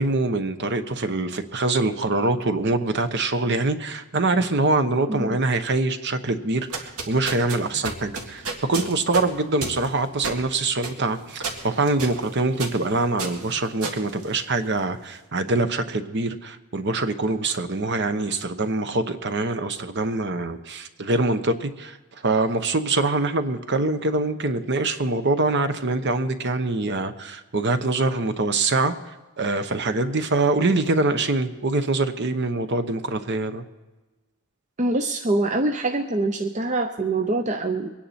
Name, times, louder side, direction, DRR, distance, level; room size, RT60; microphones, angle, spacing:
voice 1, 0.0-22.0 22.2-28.9 29.4-33.6, right 2 dB, 50° right, 9 dB, 1.0 m, -24 dB
sound 1, 6.5-14.9, right 3 dB, 75° right, 2.1 m, -33 dB
voice 2, 34.8-37.9, right 2 dB, 35° right, 5 dB, 0.6 m, -24 dB
23.5 x 10.0 x 4.3 m, 1.2 s
head